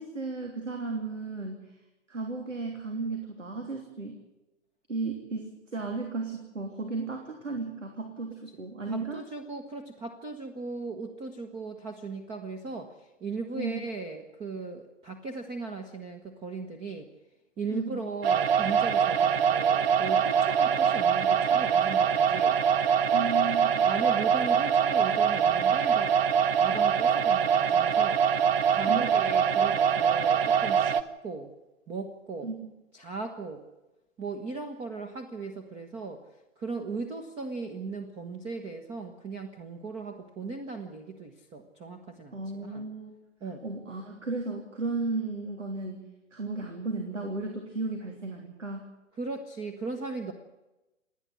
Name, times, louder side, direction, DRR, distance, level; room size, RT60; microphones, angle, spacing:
voice 1, 0.0-1.7 2.1-4.2 4.9-9.2 13.5-13.8 17.7-18.0 23.1-23.9 28.9-29.0 32.4-32.5 42.3-43.1 43.6-48.9, right 3 dB, 85° right, 3 dB, 3.3 m, -34 dB
voice 2, 8.9-17.1 17.6-22.6 23.9-26.1 26.6-28.2 28.7-31.5 31.9-32.5 32.9-33.6 34.2-36.2 36.6-42.8 43.4-43.6 49.2-50.3, right 4 dB, 15° right, 7 dB, 1.2 m, -37 dB
sound 1, 18.2-31.0, right 7 dB, 55° right, 1.1 m, -24 dB
28.0 x 10.0 x 9.4 m, 1.0 s
figure-of-eight pair, 125°, 36 cm